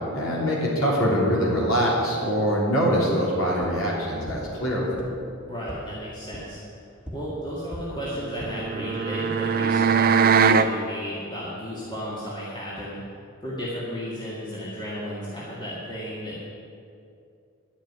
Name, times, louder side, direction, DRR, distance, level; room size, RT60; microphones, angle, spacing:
voice 1, 0.1-4.9, equal, 90° left, -4 dB, 3.3 m, -23 dB
sound 1, 3.6-3.7 4.2-4.3 4.9-5.0 5.6-5.7 6.3-6.4 7.0-7.1 7.7-7.8 8.2-8.5, equal, 5° right, 2.0 m, -38 dB
voice 2, 5.4-6.6 7.1-13.0 13.4-16.4, equal, 25° left, -7 dB, 2.1 m, -34 dB
sound 2, 8.1-10.7, right 6 dB, 45° right, 0.5 m, -21 dB
11.0 x 7.3 x 9.4 m, 2.5 s
head